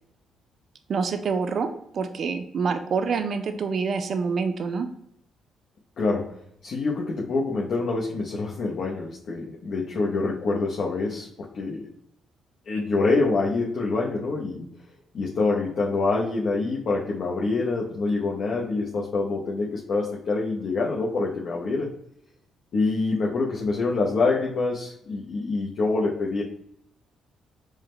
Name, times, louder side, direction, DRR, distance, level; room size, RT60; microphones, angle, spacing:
voice 1, 0.9-1.7 1.9-4.9, right 5 dB, 55° right, 8 dB, 0.4 m, -26 dB
voice 2, 6.0-6.3 6.6-11.9 12.7-14.7 15.1-21.9 22.7-26.4, left 3 dB, 60° left, -3 dB, 0.7 m, -26 dB
4.8 x 2.1 x 3.1 m, 0.72 s
cardioid pair, 90°, 0 cm